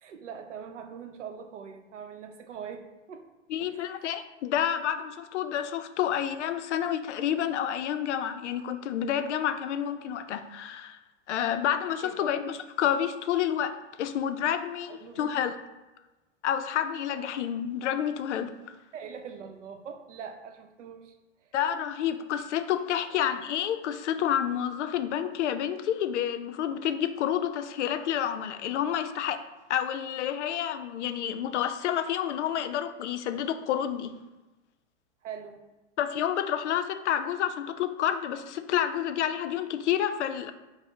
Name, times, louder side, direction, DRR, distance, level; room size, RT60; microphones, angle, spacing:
voice 1, 0.0-3.3 3.6-4.0 12.0-12.4 14.9-15.5 18.9-21.1 21.4-21.5 35.2-35.7, right 7 dB, 80° right, 6 dB, 0.6 m, -42 dB
voice 2, 3.5-11.0 11.3-15.6 16.4-18.5 21.5-29.4 29.7-34.2 36.0-40.5, left 10 dB, 70° left, 10 dB, 0.5 m, -29 dB
5.4 x 2.1 x 3.2 m, 1.1 s
hypercardioid pair, 110°, 36 cm